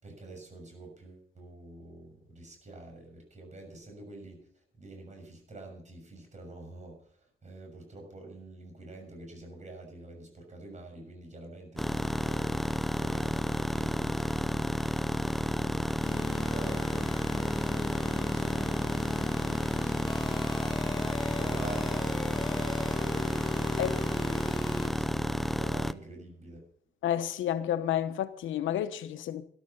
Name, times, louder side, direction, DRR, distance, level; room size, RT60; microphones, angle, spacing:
voice 1, 0.0-4.5 4.7-7.0 7.4-12.7 12.9-14.9 15.3-20.7 21.2-26.7, right 2 dB, 35° right, 6.5 m, -47 dB
sound 1, 11.8-25.9, equal, ahead, 0.6 m, -31 dB
sound 2, 16.0-24.9, left 3 dB, 25° left, 2.3 m, -40 dB
voice 2, 27.0-29.4, left 11 dB, 80° left, 1.1 m, -30 dB
13.5 x 12.0 x 5.6 m
cardioid pair, 90°, 20 cm